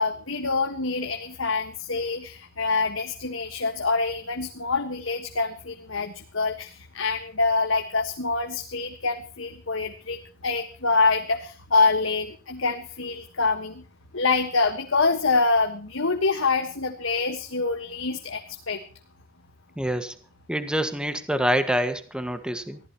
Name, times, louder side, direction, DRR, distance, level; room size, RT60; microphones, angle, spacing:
voice 1, 0.0-13.8 14.1-18.8, left 3 dB, 75° left, 5 dB, 1.6 m, -25 dB
voice 2, 19.8-20.2 20.5-22.8, equal, 5° right, 9 dB, 1.7 m, -26 dB
24.5 x 15.5 x 3.1 m, 0.38 s
head